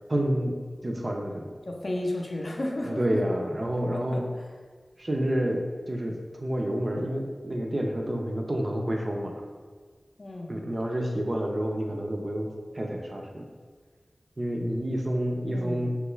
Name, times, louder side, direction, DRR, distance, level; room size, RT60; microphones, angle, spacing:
voice 1, 0.1-0.6 0.8-1.5 2.8-4.3 5.0-9.4 10.5-12.5 12.7-13.5 14.4-16.0, equal, 40° right, 1 dB, 0.4 m, -29 dB
voice 2, 1.7-3.0 3.9-4.4 10.2-10.6 15.5-15.9, left 1 dB, 55° left, 0 dB, 0.4 m, -33 dB
3.1 x 2.3 x 3.0 m, 1.5 s
wide cardioid pair, 75°, 0 cm